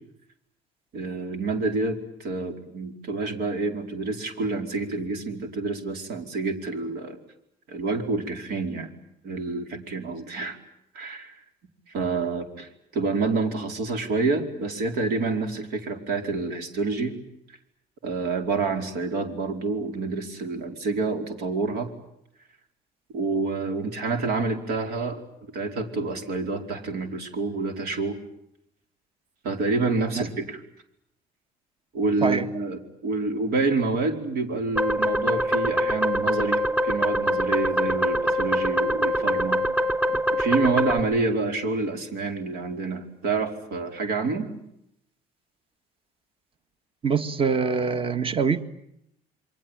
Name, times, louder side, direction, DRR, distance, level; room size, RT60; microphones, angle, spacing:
voice 1, 0.9-7.2 7.7-8.9 9.2-10.6 10.9-11.4 11.9-17.2 18.0-21.9 23.1-25.2 25.5-28.2 29.4-30.6 31.9-39.6 40.1-44.5, right 3 dB, 75° right, 4.7 m, -28 dB
sound 1, 34.8-41.0, equal, 10° right, 3.3 m, -24 dB
voice 2, 47.0-48.6, right 5 dB, 35° right, 1.7 m, -24 dB
28.0 x 23.5 x 8.9 m
cardioid pair, 105°, 16 cm